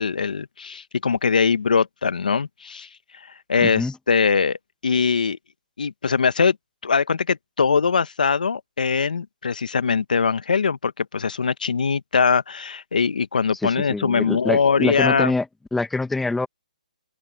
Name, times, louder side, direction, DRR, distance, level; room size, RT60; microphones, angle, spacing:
voice 1, 0.0-2.9 3.5-4.6 4.8-5.4 5.8-6.6 6.8-15.3, left 5 dB, 75° left, 1.2 m, -22 dB
voice 2, 3.6-4.0 13.6-15.5 15.7-16.5, left 3 dB, 5° left, 1.0 m, -25 dB
hypercardioid pair, 155°, 5 cm